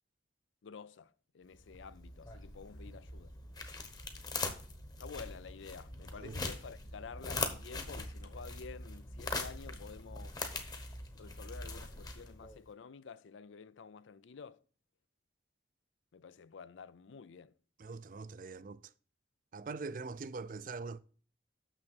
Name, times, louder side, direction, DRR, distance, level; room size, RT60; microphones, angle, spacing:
voice 1, 0.6-3.3 5.0-10.5 11.1-14.6 16.1-17.5, left 5 dB, 90° left, 0.5 m, -50 dB
sound 1, 1.5-12.6, left 3 dB, 20° left, 0.9 m, -42 dB
voice 2, 17.8-18.8 19.5-21.0, right 4 dB, 45° right, 0.4 m, -42 dB
6.6 x 6.1 x 6.2 m
head